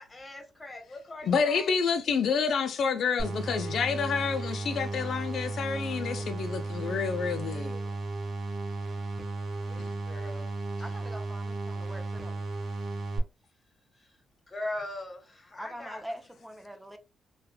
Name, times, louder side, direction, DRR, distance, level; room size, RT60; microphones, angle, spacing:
voice 1, 0.0-1.7 7.4-7.9 9.7-10.5 14.5-16.0, left 2 dB, 25° left, 1.1 m, -41 dB
voice 2, 1.2-7.8, left 6 dB, 65° left, 0.4 m, -28 dB
sound 1, 3.2-13.2, right 2 dB, 60° right, 0.6 m, -34 dB
voice 3, 10.8-12.4 15.6-17.0, equal, 5° right, 0.6 m, -43 dB
3.0 x 2.2 x 2.2 m
supercardioid pair, 60°, 0 cm